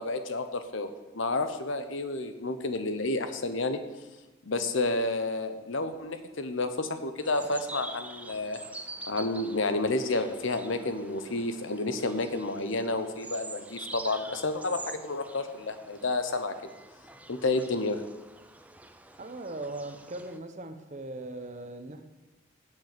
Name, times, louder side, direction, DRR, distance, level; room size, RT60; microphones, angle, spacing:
voice 1, 0.0-3.8 4.5-8.6 9.1-16.5 17.3-18.0, left 2 dB, 75° left, 9 dB, 0.9 m, -30 dB
sound 1, 7.2-20.4, right 2 dB, 5° right, 0.4 m, -46 dB
voice 2, 19.2-22.1, right 2 dB, 35° right, 8 dB, 0.8 m, -39 dB
7.7 x 7.5 x 7.9 m, 1.2 s
head